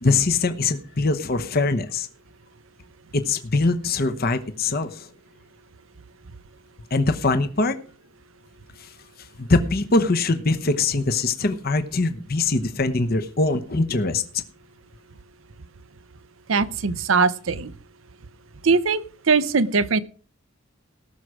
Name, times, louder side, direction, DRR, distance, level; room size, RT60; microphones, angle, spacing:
voice 1, 0.0-2.1 3.1-5.1 6.9-7.8 8.8-8.9 9.4-14.2, left 3 dB, 50° left, 9 dB, 0.9 m, -22 dB
voice 2, 16.5-17.7 18.6-19.0 19.3-20.0, right 4 dB, 70° right, 14 dB, 0.7 m, -20 dB
18.5 x 6.4 x 4.9 m, 0.41 s
head